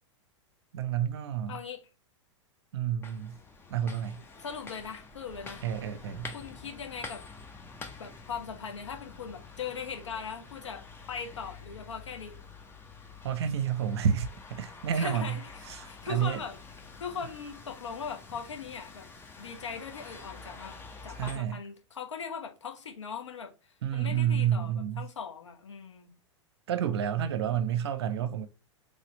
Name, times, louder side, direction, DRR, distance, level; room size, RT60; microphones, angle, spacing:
voice 1, 0.7-1.6 2.7-3.4 3.7-4.2 5.6-6.3 13.2-15.4 15.7-16.4 21.2-21.6 23.8-25.1 26.7-28.5, right 9 dB, 55° right, 0.7 m, -30 dB
voice 2, 1.5-1.8 4.4-5.6 6.3-7.2 8.0-12.4 14.9-15.5 15.9-16.6 17.0-19.1 19.4-20.7 21.0-26.1, left 6 dB, 70° left, 1.1 m, -40 dB
sound 1, 3.0-21.4, left 4 dB, 15° left, 0.8 m, -47 dB
4.2 x 3.3 x 3.9 m
figure-of-eight pair, 95°, 16 cm